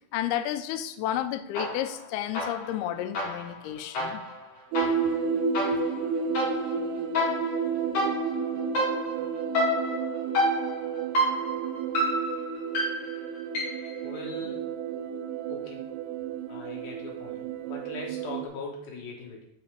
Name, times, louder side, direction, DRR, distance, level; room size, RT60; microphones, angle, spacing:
voice 1, 0.1-4.2, left 11 dB, 85° left, 8 dB, 2.2 m, -31 dB
sound 1, 1.5-2.0 2.3-14.0, left 1 dB, 40° left, 4.7 m, -30 dB
sound 2, 4.7-18.5, right 6 dB, 85° right, 2.5 m, -31 dB
voice 2, 14.0-14.7 15.5-15.9 16.5-19.5, left 3 dB, 65° left, -2 dB, 3.1 m, -40 dB
12.0 x 4.7 x 3.4 m, 0.77 s
omnidirectional pair, 5.1 m